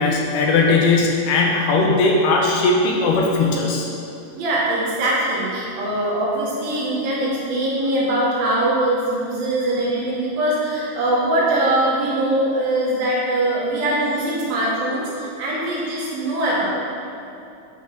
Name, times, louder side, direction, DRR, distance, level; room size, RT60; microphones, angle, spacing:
voice 1, 0.0-3.9, left 3 dB, 80° left, -1 dB, 2.6 m, -18 dB
voice 2, 4.3-16.7, right 1 dB, 65° right, -5 dB, 2.9 m, -22 dB
8.5 x 5.8 x 4.4 m, 2.6 s
omnidirectional pair, 4.8 m